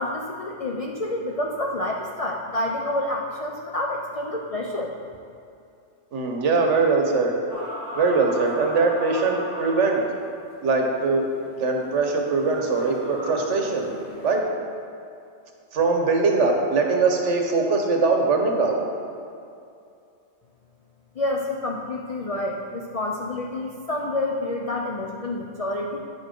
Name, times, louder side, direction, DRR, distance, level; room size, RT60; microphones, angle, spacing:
voice 1, 0.0-4.9 21.2-26.0, left 1 dB, 55° left, -1 dB, 0.4 m, -28 dB
voice 2, 6.1-7.3 7.9-10.0 10.6-11.2 11.6-13.9 14.2-14.4 15.7-18.8, right 4 dB, 75° right, 2 dB, 1.2 m, -21 dB
sound 1, 7.5-14.4, equal, 80° left, 2.1 m, -38 dB
9.5 x 5.3 x 3.7 m, 2.5 s
omnidirectional pair, 1.2 m